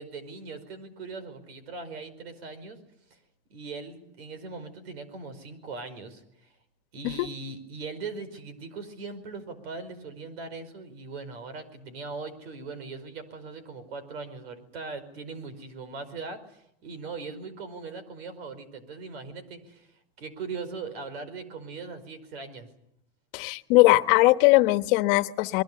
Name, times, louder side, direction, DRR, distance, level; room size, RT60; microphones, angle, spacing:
voice 1, 0.0-2.8 3.5-6.2 6.9-19.9 20.2-22.7, right 4 dB, 90° right, 5.1 m, -40 dB
voice 2, 23.3-25.6, left 20 dB, 60° left, 1.3 m, -20 dB
26.5 x 22.0 x 6.9 m
supercardioid pair, 135°, 30 cm